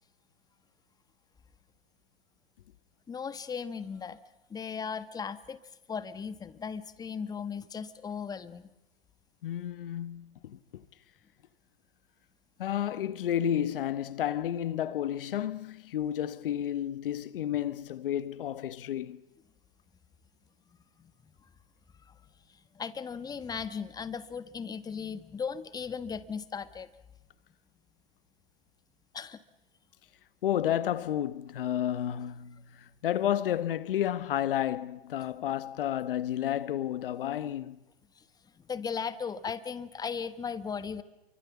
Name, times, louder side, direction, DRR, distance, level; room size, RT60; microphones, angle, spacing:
voice 1, 3.1-4.2 4.5-5.6 5.9-8.7 21.0-21.1 22.1-22.2 22.7-26.9 29.1-29.4 38.2-38.3 38.6-41.0, left 6 dB, 15° left, 1.3 m, -37 dB
voice 2, 9.4-10.8 12.6-19.2 30.4-37.8, left 11 dB, 65° left, 1.5 m, -31 dB
28.0 x 24.0 x 7.3 m
hypercardioid pair, 120°, 30 cm